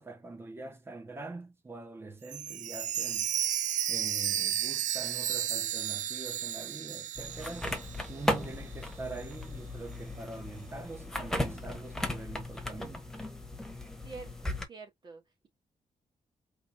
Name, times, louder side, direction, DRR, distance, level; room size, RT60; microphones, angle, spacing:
voice 1, 0.0-3.3 3.9-7.8 8.1-13.1, right 3 dB, 20° right, 0.9 m, -44 dB
Chime, 2.2-8.2 8.5-8.6 9.2-9.3, right 11 dB, 75° right, 0.4 m, -33 dB
sound 1, 7.2-14.7, left 1 dB, 5° left, 1.2 m, -36 dB
voice 2, 14.0-15.5, right 4 dB, 35° right, 2.4 m, -48 dB
4.9 x 3.1 x 2.8 m
wide cardioid pair, 170°, 13 cm